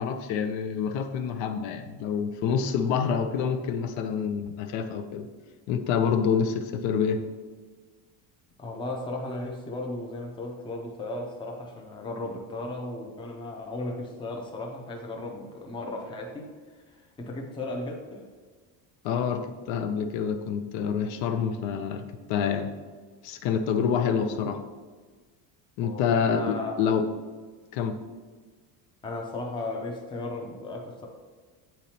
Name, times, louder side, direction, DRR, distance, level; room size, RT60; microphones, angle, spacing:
voice 1, 0.0-5.3 5.7-7.2 19.0-22.7 23.2-24.6 25.8-27.0 27.7-28.0, left 6 dB, 80° left, 8 dB, 0.7 m, -27 dB
voice 2, 8.6-18.3 24.2-24.4 25.8-26.7 29.0-31.1, left 2 dB, 10° left, 1 dB, 0.5 m, -36 dB
8.9 x 4.1 x 2.8 m, 1.4 s
cardioid pair, 170°, 45 cm